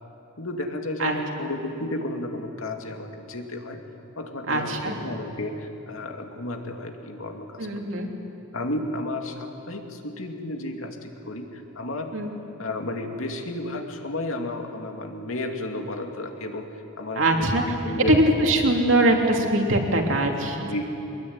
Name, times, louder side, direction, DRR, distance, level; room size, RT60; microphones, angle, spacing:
voice 1, 0.4-3.8 4.2-7.7 8.0-8.1 8.5-12.2 12.6-16.7 17.0-17.6 17.8-18.2 20.6-20.8, left 1 dB, 80° left, 3 dB, 2.6 m, -32 dB
voice 2, 4.5-4.9 7.6-8.1 12.1-12.3 17.1-17.6 18.0-20.6, right 1 dB, 70° right, 1 dB, 3.0 m, -21 dB
24.0 x 21.5 x 9.6 m, 2.9 s
head